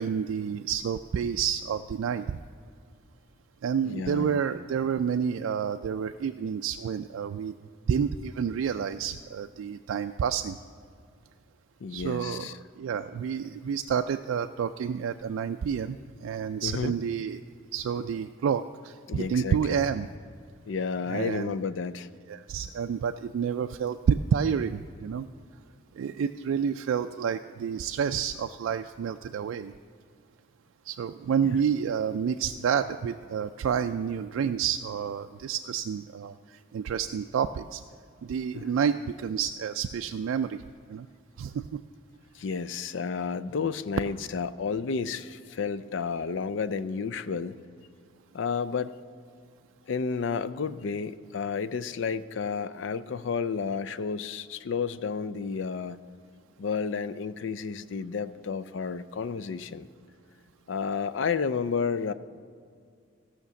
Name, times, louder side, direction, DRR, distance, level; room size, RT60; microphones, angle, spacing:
voice 1, 0.0-2.2 3.6-7.5 7.9-10.5 11.9-16.0 16.2-17.4 17.7-20.1 21.1-21.5 22.3-25.3 26.0-29.7 30.9-36.3 36.7-37.8 38.3-40.6 40.9-41.1 41.4-41.5, right 7 dB, 85° right, 7 dB, 0.3 m, -29 dB
voice 2, 3.8-4.4 11.8-12.6 16.6-16.9 19.1-19.8 20.7-22.1 31.4-31.6 38.5-38.7 42.3-47.6 48.3-49.0 49.9-56.0 56.6-59.9 60.7-62.1, left 5 dB, 70° left, 15 dB, 0.4 m, -31 dB
15.0 x 5.8 x 7.0 m, 2.2 s
head